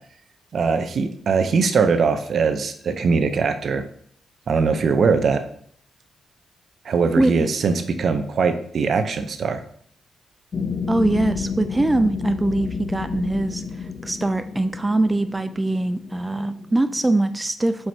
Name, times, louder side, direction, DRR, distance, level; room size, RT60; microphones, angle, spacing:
voice 1, 0.5-3.8 4.5-5.4 6.8-9.6, right 5 dB, 65° right, 8 dB, 0.7 m, -21 dB
voice 2, 7.2-7.5 10.9-17.9, right 2 dB, 20° right, 10 dB, 0.4 m, -22 dB
sound 1, 10.5-17.3, left 5 dB, 55° left, 0.4 m, -30 dB
7.2 x 4.8 x 2.8 m, 0.62 s
supercardioid pair, 50°, 0 cm